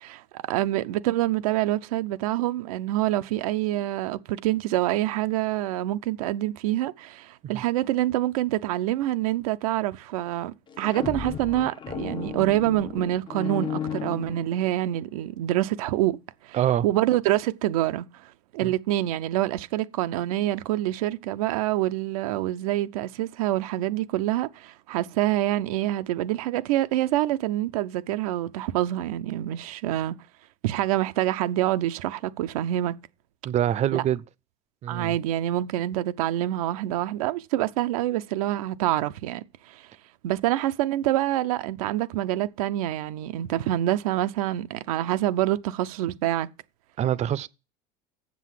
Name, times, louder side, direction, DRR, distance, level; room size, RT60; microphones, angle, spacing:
voice 1, 0.0-16.2 16.4-16.6 16.8-18.1 18.5-30.2 30.6-33.0 33.9-34.0 34.9-39.8 40.2-46.5, right 14 dB, 90° right, 0.6 m, -26 dB
sound 1, 10.7-14.9, left 8 dB, 25° left, 0.6 m, -34 dB
voice 2, 16.5-16.8 18.6-18.7 33.4-34.2 34.8-35.2 47.0-47.5, right 11 dB, 40° right, 0.6 m, -25 dB
7.3 x 6.2 x 7.4 m
supercardioid pair, 110°, 18 cm